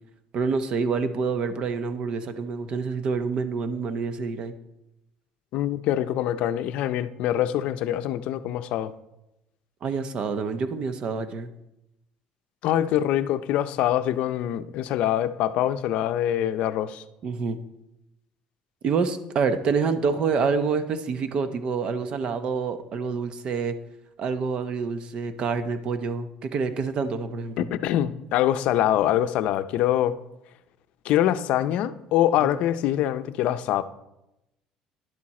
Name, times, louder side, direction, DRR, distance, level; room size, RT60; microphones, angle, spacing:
voice 1, 0.3-4.5 9.8-11.5 17.2-17.6 18.8-23.8 24.2-27.7 32.4-32.5, right 5 dB, 45° right, 11 dB, 0.8 m, -27 dB
voice 2, 5.5-8.9 12.6-17.0 27.6-30.1 31.0-33.8, left 12 dB, 70° left, 12 dB, 0.5 m, -24 dB
11.0 x 7.4 x 4.2 m, 0.90 s
cardioid pair, 125°, 2 cm